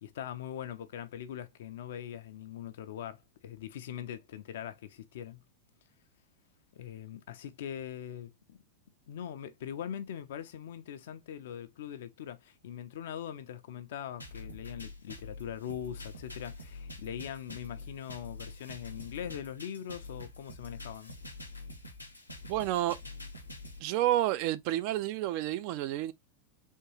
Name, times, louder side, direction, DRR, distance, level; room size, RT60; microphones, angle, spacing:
voice 1, 0.0-5.4 6.7-8.6 9.1-21.2, left 9 dB, 55° left, 0.5 m, -42 dB
sound 1, 14.2-23.8, left 2 dB, 85° left, 0.9 m, -45 dB
voice 2, 22.5-23.0 23.8-26.1, right 14 dB, 45° right, 0.4 m, -30 dB
3.6 x 3.0 x 2.9 m
figure-of-eight pair, 90°, 0 cm